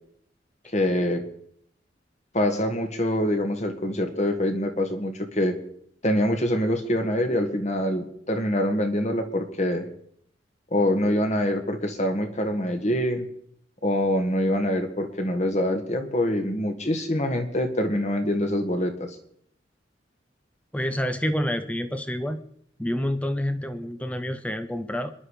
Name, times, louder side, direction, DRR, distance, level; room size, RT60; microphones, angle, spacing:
voice 1, 0.7-1.2 2.3-5.5 6.0-9.8 10.7-13.3 13.8-19.1, left 1 dB, 40° left, 6 dB, 2.0 m, -25 dB
voice 2, 20.7-22.4 22.8-25.1, equal, 10° left, 10 dB, 0.9 m, -28 dB
26.0 x 11.0 x 5.0 m, 0.68 s
head